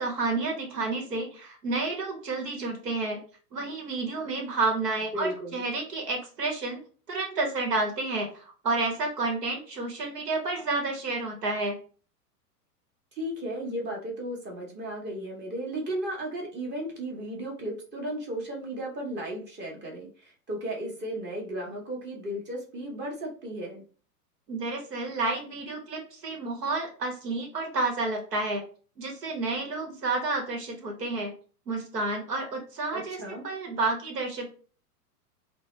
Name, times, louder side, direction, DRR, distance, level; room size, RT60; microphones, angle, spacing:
voice 1, 0.0-3.2 3.5-11.8 24.5-28.6 29.0-31.3 31.7-34.5, right 3 dB, 85° right, 2 dB, 1.0 m, -30 dB
voice 2, 5.1-5.6 13.1-23.8 32.9-33.5, right 1 dB, 20° right, -1 dB, 1.0 m, -35 dB
2.6 x 2.1 x 3.1 m, 0.40 s
hypercardioid pair, 105°, 47 cm